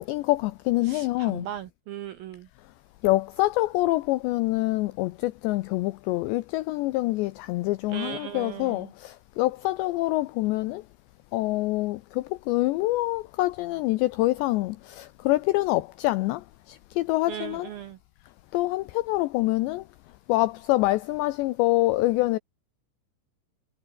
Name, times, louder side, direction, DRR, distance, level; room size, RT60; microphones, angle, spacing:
voice 1, 0.0-1.5 3.0-10.8 11.3-17.7 18.5-19.8 20.3-22.4, left 19 dB, 80° left, 2.6 m, -26 dB
voice 2, 0.8-2.5 7.9-8.9 17.3-18.0, right 10 dB, 80° right, 2.1 m, -38 dB
omnidirectional pair, 5.7 m